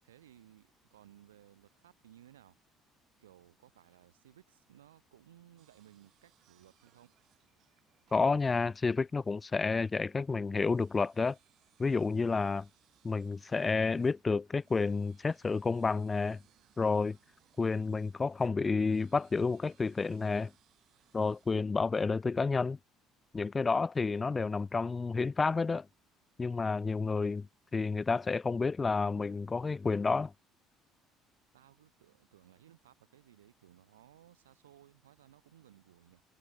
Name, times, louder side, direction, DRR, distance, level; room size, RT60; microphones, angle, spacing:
voice 1, 0.0-2.6 3.2-7.1 31.5-36.2, right 12 dB, 75° right, 4.2 m, -60 dB
sound 1, 5.6-21.6, right 13 dB, 55° right, 7.8 m, -70 dB
voice 2, 8.1-11.4 11.8-12.7 13.0-16.4 16.8-17.2 17.6-20.5 21.1-22.8 23.3-25.9 26.4-27.5 27.7-30.3, left 4 dB, 25° left, 0.5 m, -30 dB
figure-of-eight pair, 55°, 0 cm